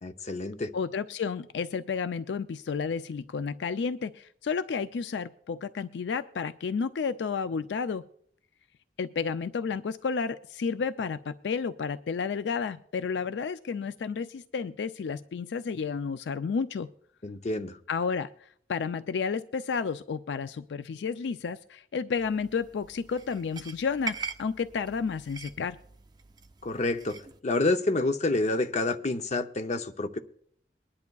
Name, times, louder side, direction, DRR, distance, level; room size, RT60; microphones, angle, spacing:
voice 1, 0.0-0.7 17.2-17.8 26.6-30.2, left 2 dB, 40° left, 8 dB, 0.7 m, -28 dB
voice 2, 0.7-8.0 9.0-16.9 17.9-25.8, left 5 dB, 75° left, 12 dB, 0.4 m, -31 dB
sound 1, 22.2-27.4, right 5 dB, 25° right, 0.6 m, -42 dB
22.5 x 10.5 x 2.3 m, 0.65 s
head